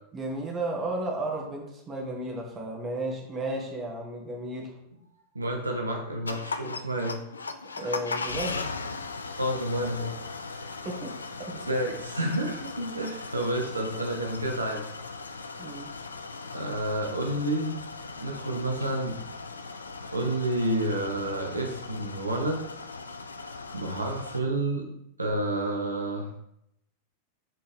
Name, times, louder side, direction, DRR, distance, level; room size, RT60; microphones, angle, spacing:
voice 1, 0.1-4.7 7.8-8.7 10.8-11.1 11.4-11.7 15.6-15.9, right 1 dB, 25° right, 0 dB, 1.8 m, -33 dB
voice 2, 5.3-7.2 7.8-7.9 9.4-10.2 10.5-10.8 11.6-14.8 16.5-17.8 18.2-19.2 20.1-22.6 23.7-24.9 25.2-26.3, right 1 dB, 80° right, 2 dB, 0.8 m, -29 dB
sound 1, 6.3-24.4, left 4 dB, 75° left, 0.5 m, -38 dB
7.3 x 4.3 x 3.6 m, 0.79 s
figure-of-eight pair, 90°, 0 cm